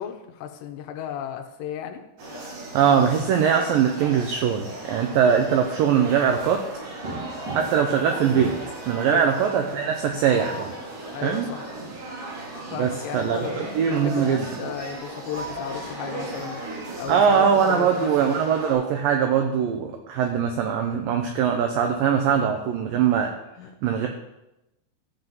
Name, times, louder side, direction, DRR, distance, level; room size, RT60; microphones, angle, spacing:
voice 1, 0.0-2.0 9.0-9.3 11.1-11.6 12.7-13.6 14.0-16.6 17.0-18.3 23.6-23.7, left 9 dB, 90° left, 5 dB, 3.0 m, -34 dB
sound 1, 2.2-18.7, right 2 dB, 65° right, 5.1 m, -36 dB
voice 2, 2.7-6.6 7.5-8.6 8.9-10.7 11.2-11.5 12.8-14.5 17.1-23.3 23.8-24.1, right 7 dB, 80° right, 4 dB, 2.0 m, -21 dB
sound 2, 7.0-8.0 8.3-8.8 10.0-10.8 13.4-14.5 15.9-16.1 16.4-16.5 18.1-19.3, right 1 dB, 40° right, 1.6 m, -39 dB
13.5 x 7.4 x 4.0 m, 0.92 s
omnidirectional pair, 4.9 m